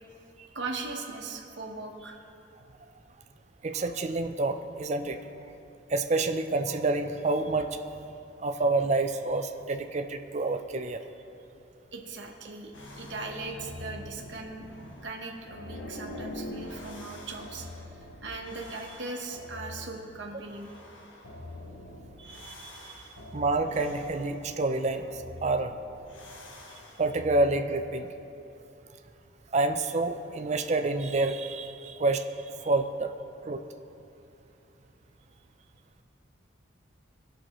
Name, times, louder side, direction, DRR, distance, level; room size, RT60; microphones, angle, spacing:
voice 1, 0.5-2.3 11.9-14.6 15.0-20.7 22.2-23.2 26.7-26.8, right 3 dB, 65° right, 1 dB, 1.1 m, -39 dB
voice 2, 3.6-5.2 5.9-7.8 8.4-11.0 23.3-25.1 25.4-25.7 27.0-28.1 29.5-32.3 32.6-33.1 33.4-33.6, right 2 dB, 35° right, 7 dB, 0.4 m, -28 dB
sound 1, 12.7-27.6, left 1 dB, 75° left, 1.0 m, -44 dB
17.5 x 6.3 x 3.0 m, 2.8 s
head